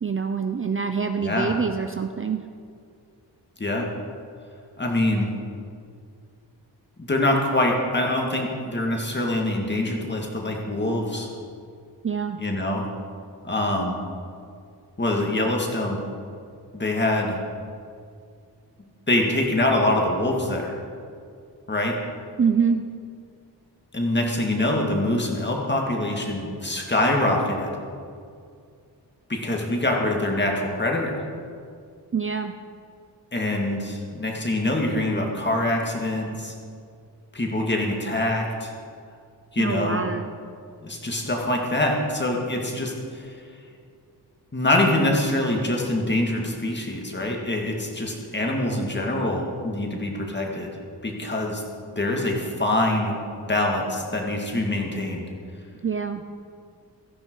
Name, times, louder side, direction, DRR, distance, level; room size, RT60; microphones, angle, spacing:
voice 1, 0.0-2.4 12.0-12.4 22.4-22.8 32.1-32.5 39.6-40.3 55.8-56.2, right 6 dB, 30° right, 7 dB, 0.5 m, -25 dB
voice 2, 1.2-1.6 3.6-3.9 4.8-5.3 7.1-11.3 12.4-12.8 13.4-14.0 15.0-16.0 16.7-17.4 19.1-20.8 21.7-21.9 23.9-27.7 29.3-31.2 33.3-36.5 37.3-38.7 39.5-40.0 40.8-43.3 44.5-50.7 51.0-51.6 52.0-53.1 53.5-55.3, left 1 dB, 25° left, 0 dB, 2.1 m, -24 dB
16.5 x 14.0 x 4.7 m, 2.3 s
wide cardioid pair, 160°, 41 cm